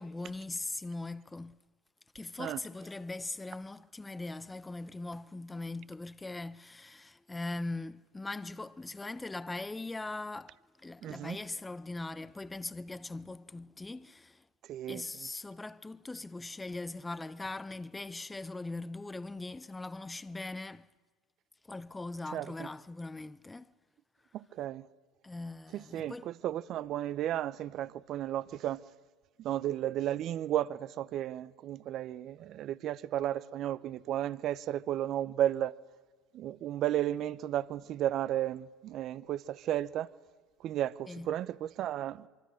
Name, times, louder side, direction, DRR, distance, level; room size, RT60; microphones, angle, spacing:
voice 1, 0.0-1.5 2.1-14.5 14.9-20.9 21.6-23.7 25.2-26.3 41.1-41.3, left 2 dB, 15° left, 0.7 m, -40 dB
voice 2, 11.0-11.4 14.7-15.0 22.3-22.7 24.3-24.9 25.7-28.8 29.4-35.7 36.3-40.1 40.6-42.3, right 12 dB, 55° right, 0.7 m, -33 dB
24.5 x 24.5 x 6.5 m
hypercardioid pair, 85°, 0 cm